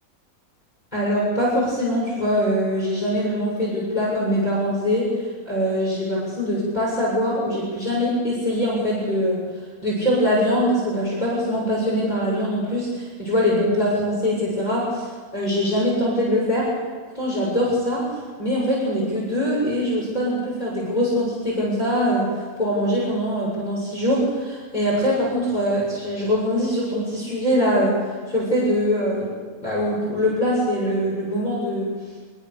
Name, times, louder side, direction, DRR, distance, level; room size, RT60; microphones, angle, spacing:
voice 1, 0.9-5.1 5.5-9.4 9.8-16.7 17.1-18.1 18.4-22.3 22.6-29.3 29.6-31.9, equal, 25° left, -7 dB, 7.2 m, -23 dB
27.0 x 20.0 x 6.9 m, 1.5 s
omnidirectional pair, 1.6 m